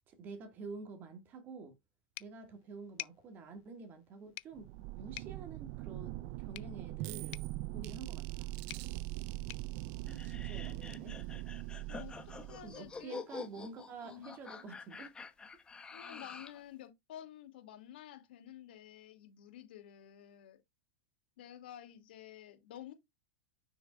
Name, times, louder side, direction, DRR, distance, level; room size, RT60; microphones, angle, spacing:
voice 1, 0.1-1.7 2.2-4.7 4.9-7.4 7.7-8.5 10.0-11.2 12.6-15.1, right 4 dB, 35° right, 1.9 m, -48 dB
sound 1, 2.1-10.8, left 25 dB, 55° left, 0.4 m, -53 dB
sound 2, 4.5-13.0, right 18 dB, 50° right, 0.5 m, -42 dB
sound 3, 10.1-16.6, left 5 dB, 15° left, 1.3 m, -48 dB
voice 2, 12.5-13.2 14.0-14.3 15.9-20.6 21.4-22.9, left 11 dB, 70° left, 2.5 m, -51 dB
7.9 x 6.4 x 2.4 m
hypercardioid pair, 115°, 6 cm